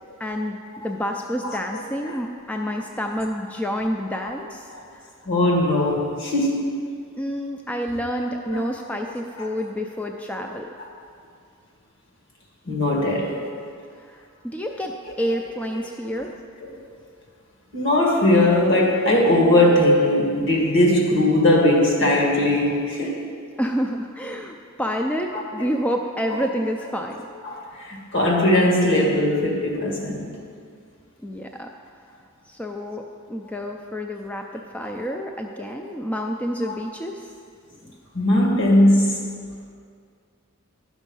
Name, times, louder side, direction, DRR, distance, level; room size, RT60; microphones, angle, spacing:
voice 1, 0.2-5.1 7.2-10.7 14.0-16.4 23.6-27.3 31.2-31.7 32.5-37.2 37.7-38.0, equal, 5° left, 2 dB, 0.3 m, -29 dB
voice 2, 1.4-2.2 4.7-4.8 5.2-6.8 8.5-8.6 9.4-9.5 10.5-10.6 12.7-13.5 15.8-15.9 16.6-16.8 17.7-23.2 25.3-25.7 26.3-26.4 27.4-30.3 33.4-33.5 36.7-36.8 38.1-39.2, left 1 dB, 60° left, -2 dB, 1.9 m, -20 dB
11.5 x 6.2 x 5.4 m, 2.2 s
head